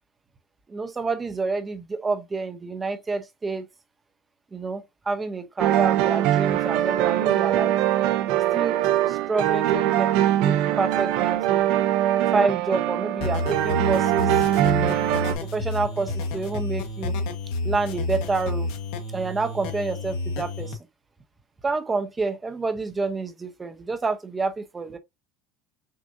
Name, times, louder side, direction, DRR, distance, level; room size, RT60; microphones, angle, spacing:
voice 1, 0.7-3.6 4.5-7.7 8.5-8.8 9.1-11.7 12.3-15.0 15.4-17.2 17.6-18.7 19.1-20.8 21.6-25.0, right 3 dB, 15° right, 0.6 m, -28 dB
sound 1, 5.6-15.3, right 13 dB, 60° right, 0.5 m, -22 dB
sound 2, 13.2-20.7, left 2 dB, 65° left, 1.1 m, -30 dB
6.2 x 2.5 x 2.6 m
cardioid pair, 160°, 0 cm